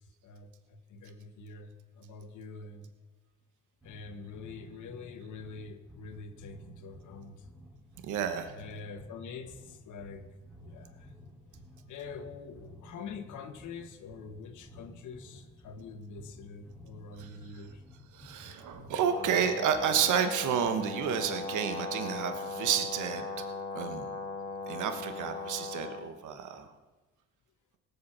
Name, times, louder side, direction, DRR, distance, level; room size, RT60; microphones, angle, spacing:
voice 1, 0.2-2.9 3.8-7.4 8.6-10.3 10.6-11.1 11.9-17.8, left 4 dB, 75° left, 1.4 m, -45 dB
sound 1, 3.8-20.2, equal, ahead, 2.7 m, -53 dB
voice 2, 8.0-8.5 17.2-17.7 18.1-23.4 23.7-24.1 24.7-26.7, right 8 dB, 80° right, 1.2 m, -31 dB
Brass instrument, 19.1-26.1, left 3 dB, 15° left, 2.5 m, -38 dB
18.0 x 8.4 x 6.1 m
cardioid pair, 90°, 30 cm